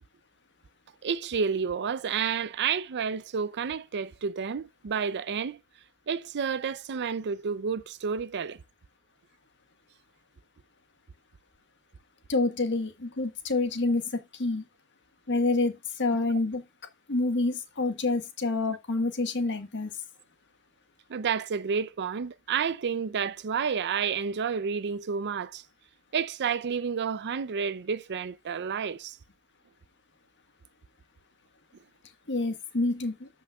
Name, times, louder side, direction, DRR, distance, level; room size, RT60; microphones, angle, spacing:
voice 1, 1.0-5.6 6.1-8.6 21.1-25.6 26.1-29.2, right 6 dB, 50° right, 0.5 m, -30 dB
voice 2, 12.3-14.6 15.3-16.6 17.1-19.9 32.3-33.3, left 2 dB, 55° left, 1.5 m, -28 dB
14.0 x 5.6 x 2.3 m
head